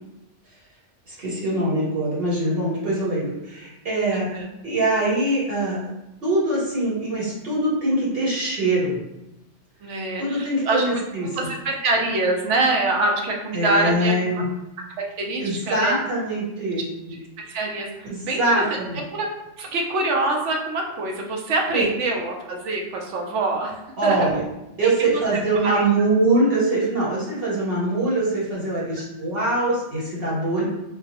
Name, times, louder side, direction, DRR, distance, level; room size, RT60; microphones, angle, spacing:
voice 1, 1.1-4.3 4.6-5.8 6.2-9.0 10.2-11.3 13.5-14.4 15.4-17.2 18.0-19.0 21.7-21.9 24.0-24.4 24.8-30.6, right 2 dB, 55° right, -7 dB, 1.1 m, -23 dB
voice 2, 4.1-4.5 9.8-10.8 11.3-14.1 15.2-16.0 17.4-18.6 19.1-19.3 19.6-23.7 24.0-24.3 25.1-25.2 25.6-25.8, right 2 dB, 80° right, 1 dB, 1.0 m, -25 dB
3.8 x 2.1 x 2.8 m, 0.91 s
omnidirectional pair, 1.2 m